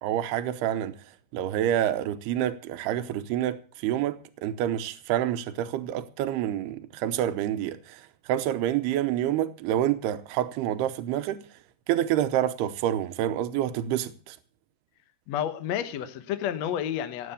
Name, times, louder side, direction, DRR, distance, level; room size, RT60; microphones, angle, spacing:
voice 1, 0.0-1.0 1.3-8.0 8.3-11.4 11.9-14.4, right 11 dB, 85° right, 2.9 m, -28 dB
voice 2, 15.3-17.3, left 10 dB, 70° left, 1.6 m, -30 dB
17.5 x 8.6 x 6.9 m
omnidirectional pair, 4.6 m